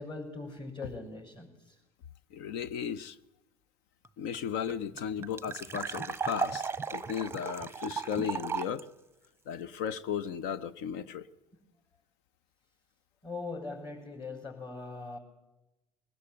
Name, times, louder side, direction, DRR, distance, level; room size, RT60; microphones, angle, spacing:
voice 1, 0.0-1.7 13.2-15.2, left 3 dB, 25° left, 6.4 m, -41 dB
voice 2, 2.3-3.2 4.2-8.9 9.5-11.3, left 8 dB, 60° left, 0.9 m, -35 dB
sound 1, 4.0-4.1 4.3-4.4 4.7-8.8, right 6 dB, 10° right, 0.9 m, -35 dB
21.5 x 20.0 x 9.2 m
hypercardioid pair, 65°, 20 cm